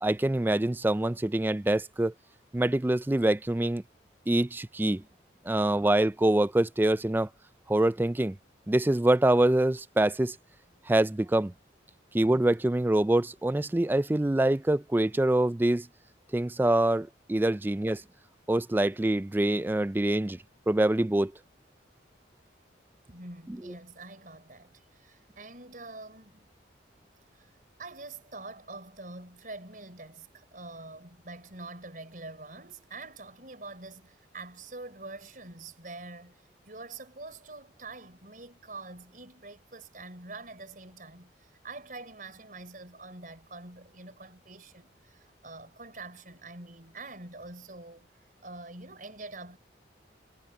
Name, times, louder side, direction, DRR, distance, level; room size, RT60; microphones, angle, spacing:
voice 1, 0.0-2.1 2.5-3.8 4.3-5.0 5.5-7.3 7.7-8.4 8.7-10.4 10.9-11.5 12.1-15.9 16.3-18.0 18.5-20.4 20.7-21.3, right 1 dB, 10° right, 0.3 m, -25 dB
voice 2, 23.1-26.5 27.3-27.5 27.8-49.6, right 3 dB, 45° right, 5.0 m, -45 dB
head